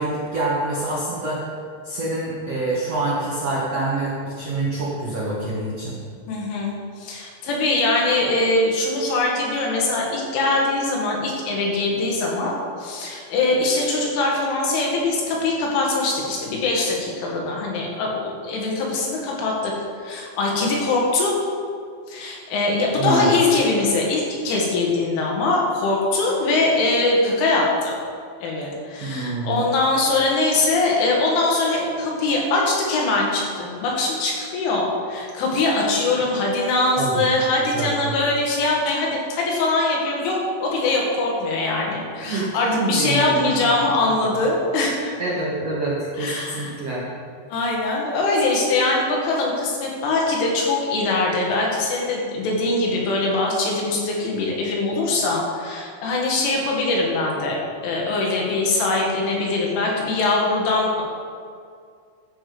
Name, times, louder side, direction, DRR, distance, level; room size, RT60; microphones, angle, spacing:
voice 1, 0.0-1.4 1.8-6.0 23.0-23.3 29.0-29.6 37.0-37.2 37.7-38.1 42.3-43.7 44.2-44.3 45.2-47.1, right 2 dB, 70° right, -6 dB, 1.5 m, -26 dB
voice 2, 6.3-19.7 20.0-21.4 22.1-27.9 28.4-45.1 46.2-46.7 47.5-57.6 57.8-61.0, left 2 dB, 80° left, -2 dB, 4.3 m, -22 dB
12.5 x 7.8 x 5.0 m, 2.2 s
omnidirectional pair, 5.6 m